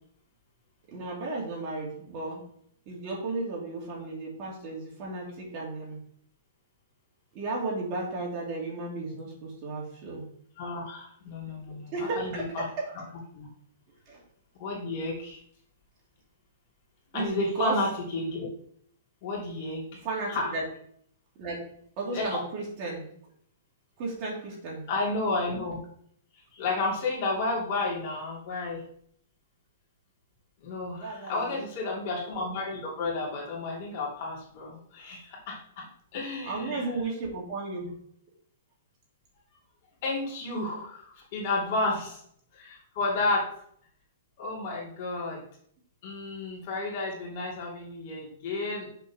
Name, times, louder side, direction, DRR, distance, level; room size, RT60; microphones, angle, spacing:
voice 1, 0.9-2.4 2.9-6.0 7.3-10.3 11.5-12.9 14.1-14.2 17.1-17.7 20.0-20.6 21.4-21.6 22.0-23.1 24.0-24.8 31.0-31.6 36.4-37.9, right 3 dB, 30° right, -3 dB, 2.6 m, -34 dB
voice 2, 10.6-12.6 13.3-13.5 14.6-15.4 17.1-18.5 19.2-19.8 20.3-20.5 22.1-22.4 24.9-25.8 26.5-28.8 30.6-35.8 36.1-36.9 40.0-42.2 42.5-43.5 44.4-45.4 46.0-48.9, left 2 dB, 40° left, -4 dB, 3.1 m, -31 dB
6.9 x 4.7 x 5.9 m, 0.64 s
hypercardioid pair, 165°, 0 cm